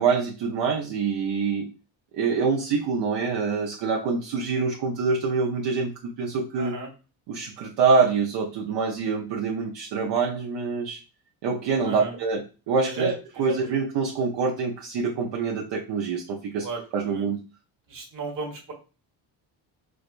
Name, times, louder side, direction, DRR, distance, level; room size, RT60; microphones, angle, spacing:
voice 1, 0.0-1.7 2.1-6.8 7.3-11.0 11.4-16.7 16.9-17.4, right 5 dB, 65° right, -1 dB, 0.7 m, -25 dB
voice 2, 6.6-6.9 11.8-12.1 12.8-13.8 16.6-17.3 17.9-18.7, right 4 dB, 45° right, 0 dB, 1.4 m, -34 dB
4.8 x 2.2 x 2.5 m, 0.33 s
cardioid pair, 110°, 45 cm